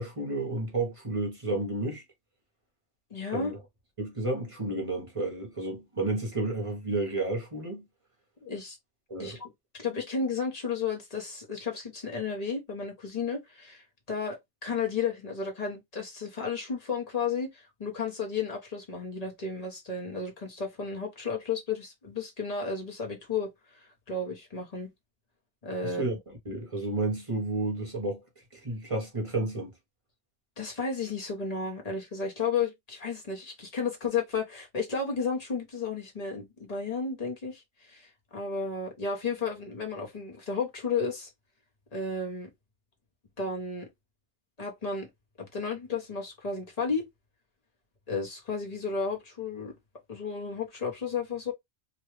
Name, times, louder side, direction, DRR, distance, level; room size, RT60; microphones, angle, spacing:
voice 1, 0.0-2.0 3.3-3.6 4.0-7.8 9.1-9.4 25.8-28.2 28.5-29.7, right 2 dB, 30° right, 0.8 m, -31 dB
voice 2, 3.1-3.5 8.4-8.8 9.2-9.5 9.8-23.5 24.1-24.9 25.6-26.2 30.6-41.3 41.9-42.5 43.4-43.9 44.6-45.1 45.4-47.0 48.1-49.8 50.1-51.5, left 5 dB, 35° left, 0.9 m, -33 dB
2.9 x 2.3 x 3.1 m
omnidirectional pair, 1.4 m